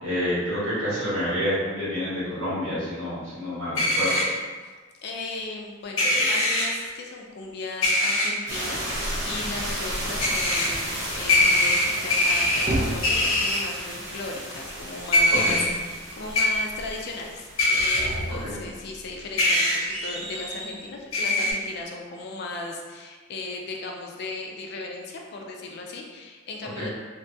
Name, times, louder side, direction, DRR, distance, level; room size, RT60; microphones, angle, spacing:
voice 1, 0.0-4.3 6.2-6.3 15.3-15.7 18.4-18.6 26.7-26.9, equal, 85° right, -10 dB, 1.4 m, -28 dB
sound 1, 3.8-4.3 6.0-6.7 7.8-8.3 10.2-10.7 11.3-12.7 13.0-13.6 15.1-15.6 16.3-16.4 17.6-18.0 19.4-19.8 21.1-21.5, left 1 dB, 85° left, 0.7 m, -22 dB
voice 2, 5.0-26.9, left 3 dB, 55° left, 0 dB, 0.4 m, -37 dB
sound 2, 8.5-18.5, right 1 dB, 65° right, 0.7 m, -34 dB
sound 3, 12.0-13.5 17.6-20.9, right 1 dB, 30° right, 0.4 m, -33 dB
2.7 x 2.2 x 2.6 m, 1.4 s
head